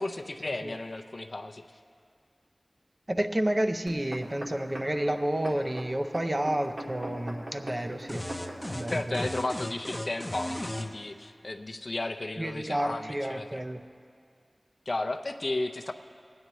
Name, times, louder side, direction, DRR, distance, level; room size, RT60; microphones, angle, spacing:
voice 1, 0.0-1.6 8.9-13.6 14.9-15.9, left 2 dB, 60° left, 5 dB, 0.5 m, -34 dB
voice 2, 3.1-8.3 8.7-9.3 12.4-13.8, right 1 dB, 30° right, 6 dB, 0.5 m, -30 dB
sound 1, 3.9-8.8 9.4-9.5, right 1 dB, 80° right, 1.8 m, -40 dB
sound 2, 8.1-10.9, left 1 dB, 20° left, 0.6 m, -36 dB
19.0 x 9.4 x 3.0 m, 2.2 s
wide cardioid pair, 60°, 0 cm